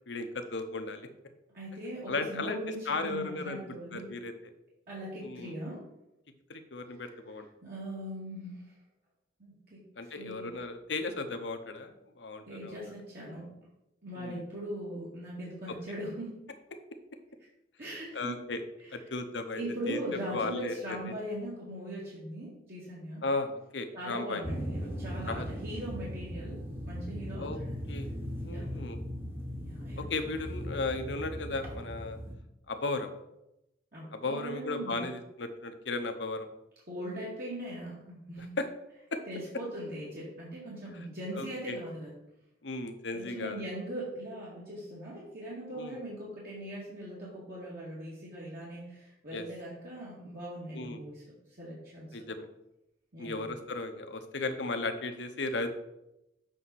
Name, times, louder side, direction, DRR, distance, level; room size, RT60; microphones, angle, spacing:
voice 1, 0.1-1.1 2.1-2.6 2.9-3.6 3.9-4.3 5.2-5.5 6.5-7.5 10.0-12.8 14.2-14.4 18.1-18.6 18.9-19.6 19.9-20.0 20.3-21.0 23.2-24.4 25.3-25.5 27.4-27.6 27.9-28.2 28.4-29.0 30.0-32.2 32.7-33.1 34.1-36.5 38.6-38.7 39.1-39.2 41.3-41.8 42.6-43.6 45.7-46.0 49.3-49.4 50.7-51.0 52.1-52.5 53.2-55.7, left 3 dB, 70° left, 6 dB, 0.9 m, -35 dB
voice 2, 1.5-4.1 4.9-5.8 6.9-7.1 7.6-8.7 9.4-10.5 12.5-13.5 14.0-16.4 17.8-18.4 18.8-19.0 19.5-23.2 23.9-26.6 26.9-27.8 28.5-28.7 29.6-30.4 33.9-35.0 36.9-38.5 39.3-42.1 43.1-51.2 51.6-52.2 53.1-53.5, right 1 dB, 55° right, -7 dB, 2.2 m, -40 dB
sound 1, 24.4-32.3, equal, 15° right, 1.1 m, -38 dB
7.7 x 5.6 x 4.1 m, 0.88 s
head